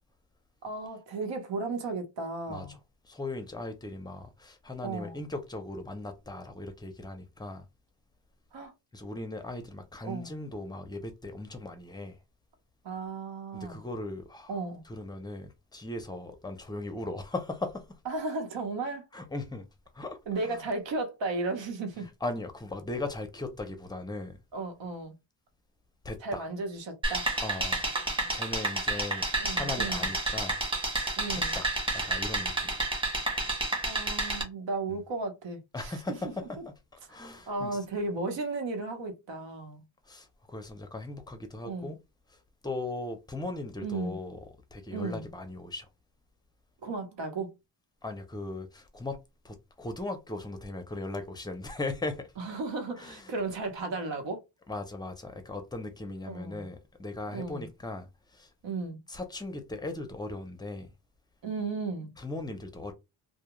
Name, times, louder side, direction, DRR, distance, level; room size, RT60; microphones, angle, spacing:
voice 1, 0.6-2.8 4.8-5.2 8.5-8.7 10.0-10.4 12.8-13.8 14.5-14.8 18.1-19.1 20.3-22.1 24.5-25.1 26.2-27.2 27.6-27.7 28.2-28.4 29.4-30.1 31.2-31.6 33.8-36.2 37.5-39.8 41.6-42.0 43.8-44.2 44.9-45.3 46.8-47.5 52.4-54.4 56.2-56.7 57.3-57.7 58.6-59.0 61.4-62.1, right 3 dB, 75° right, 1.0 m, -35 dB
voice 2, 3.0-7.6 8.9-12.2 13.5-14.6 14.9-18.0 19.1-19.7 19.9-20.2 20.4-20.7 22.0-24.4 26.0-26.5 27.4-27.8 28.3-29.3 29.5-30.6 31.3-31.7 31.9-32.8 34.9-35.0 35.7-36.7 37.1-37.8 40.1-42.0 42.3-42.4 42.6-44.4 44.7-45.9 48.0-52.3 53.0-53.3 54.7-58.5 59.1-60.9 62.2-62.9, left 2 dB, 10° left, 0.5 m, -38 dB
sound 1, 27.0-34.4, right 2 dB, 10° right, 0.9 m, -30 dB
2.3 x 2.2 x 3.0 m
cardioid pair, 110°, 44 cm